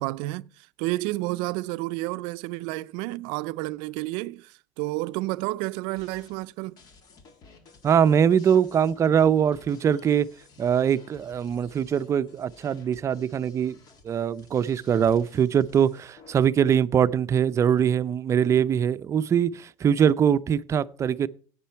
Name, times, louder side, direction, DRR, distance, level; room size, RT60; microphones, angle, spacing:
voice 1, 0.0-6.8, right 20 dB, 90° right, 0.4 m, -31 dB
sound 1, 6.0-16.3, left 4 dB, 50° left, 1.9 m, -55 dB
voice 2, 7.8-10.3 10.6-13.8 14.0-21.3, right 8 dB, 35° right, 0.5 m, -22 dB
10.5 x 8.3 x 4.4 m
cardioid pair, 120°, 8 cm